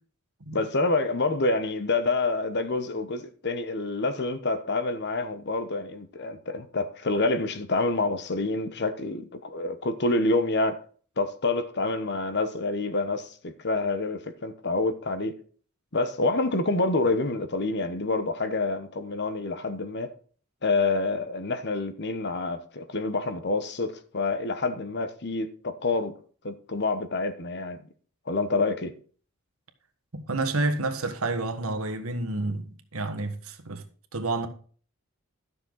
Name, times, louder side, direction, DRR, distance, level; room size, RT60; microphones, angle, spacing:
voice 1, 0.5-10.8 11.2-15.4 15.9-20.1 20.6-26.1 26.4-27.8 28.3-28.9, left 3 dB, 50° left, 1.0 m, -27 dB
voice 2, 30.1-33.8 34.1-34.5, right 2 dB, 75° right, 1.4 m, -29 dB
12.5 x 6.8 x 3.9 m
head